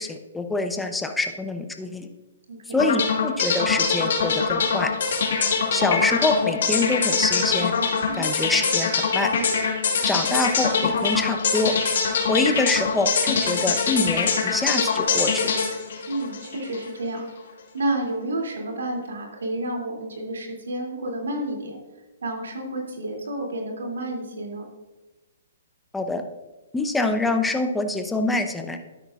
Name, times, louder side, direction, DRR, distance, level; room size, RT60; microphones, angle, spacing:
voice 1, 0.0-2.1 2.7-4.9 5.7-7.7 8.2-9.3 10.1-11.7 12.3-15.5 25.9-26.2 26.7-28.8, left 2 dB, 5° left, 5 dB, 0.8 m, -25 dB
voice 2, 2.5-2.8 8.1-8.3 16.1-17.3 17.7-21.8 22.2-24.7, right 1 dB, 80° right, 1 dB, 2.7 m, -30 dB
sound 1, 2.8-16.9, left 5 dB, 65° left, 2.4 m, -23 dB
12.0 x 9.9 x 2.5 m, 1.1 s
hypercardioid pair, 140°, 0 cm